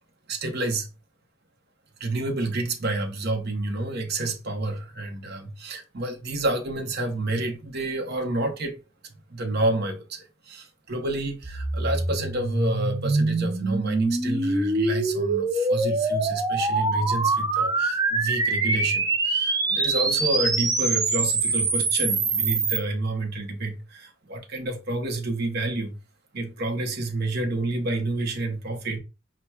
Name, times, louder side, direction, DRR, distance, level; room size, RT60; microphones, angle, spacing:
voice 1, 0.3-0.9 2.0-8.8 9.3-26.0 26.3-29.0, right 2 dB, 55° right, 0.8 m, -29 dB
sound 1, 11.4-22.8, right 3 dB, 20° right, 0.5 m, -24 dB
5.7 x 2.2 x 2.3 m
head